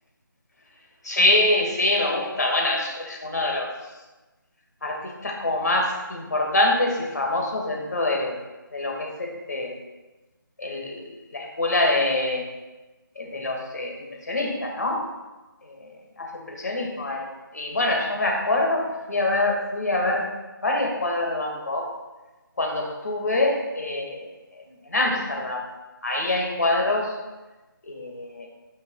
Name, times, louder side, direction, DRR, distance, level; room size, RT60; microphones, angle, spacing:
voice 1, 1.0-3.7 4.8-8.4 8.7-9.8 10.6-12.5 13.2-15.1 15.6-17.3 17.5-20.3 20.6-21.9 22.6-24.3 24.7-25.7 26.0-27.2 27.9-28.5, left 2 dB, 50° left, 0 dB, 1.9 m, -25 dB
13.0 x 6.2 x 2.3 m, 1.1 s
figure-of-eight pair, 180°, 11 cm